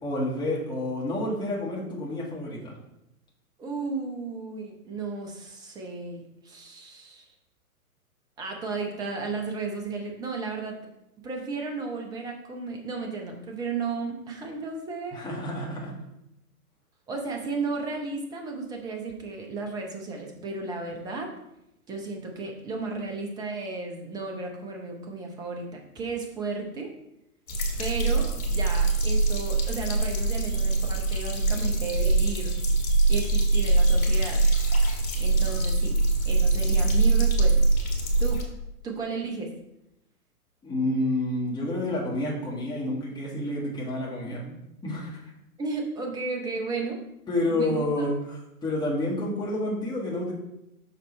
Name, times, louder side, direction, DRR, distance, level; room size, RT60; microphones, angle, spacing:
voice 1, 0.0-2.7 15.1-15.9 40.6-44.5 44.8-45.3 47.3-50.3, left 1 dB, 10° left, -4 dB, 1.7 m, -29 dB
voice 2, 3.6-7.3 8.4-10.8 11.2-15.3 17.1-21.3 21.9-26.9 27.8-32.6 33.1-34.4 35.2-36.0 36.2-37.7 38.2-38.5 38.8-39.5 45.6-47.0 47.5-48.1, right 4 dB, 10° right, 1 dB, 0.6 m, -34 dB
sound 1, 27.5-38.4, right 3 dB, 70° left, 2.0 m, -23 dB
6.6 x 4.3 x 4.2 m, 0.85 s
hypercardioid pair, 125°, 45 cm